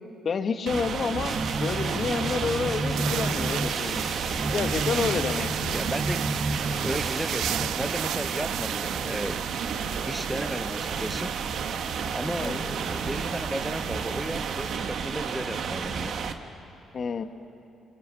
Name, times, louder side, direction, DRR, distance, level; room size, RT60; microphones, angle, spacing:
voice 1, 0.2-4.1 4.5-5.5 12.3-12.6 16.9-17.2, left 5 dB, 50° left, 8 dB, 1.3 m, -29 dB
sound 1, 0.7-16.3, right 6 dB, 65° right, 1.3 m, -32 dB
sound 2, 1.2-7.7, right 2 dB, 50° right, 1.7 m, -31 dB
sound 3, 1.3-14.8, right 11 dB, 85° right, 0.6 m, -36 dB
voice 2, 5.7-6.2 6.7-9.4 10.0-11.4 12.1-16.2, equal, 5° right, 11 dB, 0.7 m, -34 dB
27.0 x 23.5 x 6.9 m, 2.6 s
cardioid pair, 90°, 0 cm